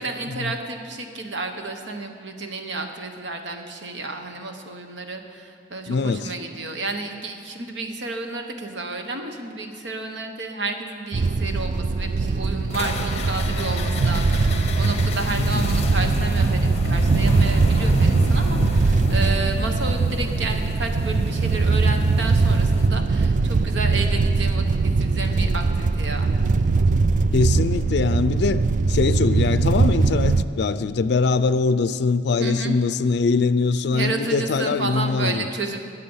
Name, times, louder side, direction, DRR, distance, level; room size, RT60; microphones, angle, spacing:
voice 1, 0.0-26.3 32.4-32.7 33.9-35.8, right 3 dB, 85° right, 5 dB, 1.2 m, -31 dB
voice 2, 5.9-6.3 15.4-15.7 27.3-28.6 28.9-35.5, left 4 dB, 65° left, 13 dB, 0.4 m, -22 dB
sound 1, 11.1-30.4, right 3 dB, 45° right, 0.4 m, -21 dB
sound 2, 12.7-22.9, left 2 dB, 35° left, 0.8 m, -32 dB
19.5 x 7.5 x 5.6 m, 2.3 s
head